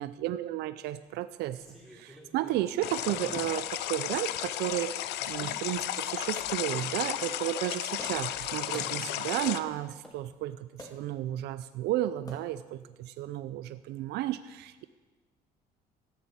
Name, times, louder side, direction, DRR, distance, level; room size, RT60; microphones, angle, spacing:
voice 1, 0.0-14.8, right 14 dB, 80° right, 13 dB, 0.5 m, -33 dB
Telephone, 1.5-3.9 4.4-4.9 5.2-10.2, equal, 5° left, 3.3 m, -49 dB
sound 1, 2.8-9.6, left 13 dB, 80° left, 0.6 m, -34 dB
sound 2, 6.8-7.0 8.0-8.5 9.5-9.8 10.8-11.2 12.2-12.7, left 1 dB, 20° left, 2.5 m, -48 dB
13.5 x 7.1 x 7.9 m, 1.3 s
cardioid pair, 110°, 17 cm